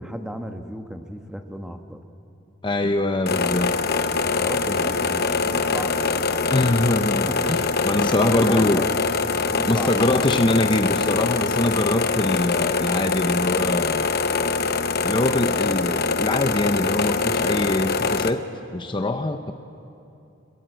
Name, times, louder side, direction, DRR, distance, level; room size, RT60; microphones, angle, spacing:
voice 1, 0.0-2.0 4.1-6.0 6.5-6.9 7.2-7.7 8.2-9.1 9.4-10.2, equal, 5° right, 5 dB, 1.2 m, -34 dB
voice 2, 2.6-3.7 6.5-7.6 7.8-8.9 9.7-14.0 15.0-18.4 18.7-19.5, left 2 dB, 25° left, 7 dB, 0.7 m, -23 dB
sound 1, 3.3-18.3, left 4 dB, 55° left, 0.9 m, -23 dB
22.0 x 21.0 x 9.0 m, 2.7 s
head